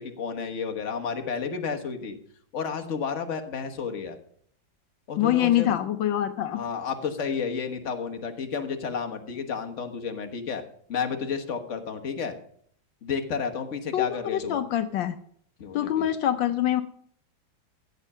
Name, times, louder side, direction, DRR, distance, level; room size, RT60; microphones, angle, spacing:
voice 1, 0.0-2.2 2.5-4.2 5.1-5.8 6.5-10.6 10.9-12.3 13.0-14.6 15.6-16.1, left 6 dB, 40° left, 5 dB, 1.5 m, -31 dB
voice 2, 5.2-6.6 13.9-15.2 15.7-16.8, left 12 dB, 75° left, 9 dB, 1.4 m, -25 dB
15.0 x 8.3 x 5.5 m, 0.62 s
omnidirectional pair, 2.1 m